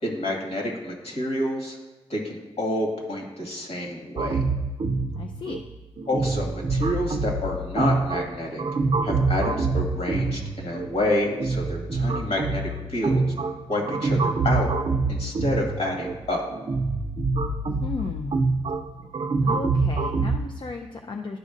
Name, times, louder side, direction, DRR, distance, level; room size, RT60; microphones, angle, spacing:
voice 1, 0.0-1.8 2.1-4.4 6.1-8.6 9.0-13.3 13.7-14.7 15.1-16.4, left 1 dB, 60° left, -1 dB, 1.9 m, -28 dB
sound 1, 4.2-20.4, right 3 dB, 50° right, 0.4 m, -26 dB
voice 2, 5.2-5.6 17.8-18.4 19.4-21.4, left 3 dB, 45° left, 3 dB, 0.4 m, -34 dB
11.5 x 5.1 x 2.5 m, 1.2 s
wide cardioid pair, 95°, 11 cm